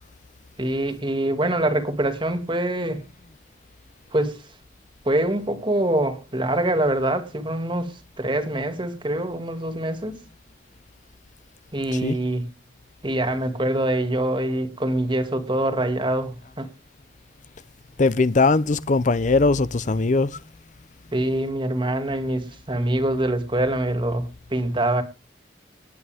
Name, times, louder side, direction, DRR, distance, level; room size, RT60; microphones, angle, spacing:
voice 1, 0.6-3.0 4.1-4.4 5.0-10.2 11.7-12.5 13.0-16.7 21.1-25.0, right 1 dB, 25° right, 2.3 m, -24 dB
voice 2, 18.0-20.3, left 3 dB, 45° left, 0.6 m, -20 dB
19.5 x 9.1 x 3.5 m
head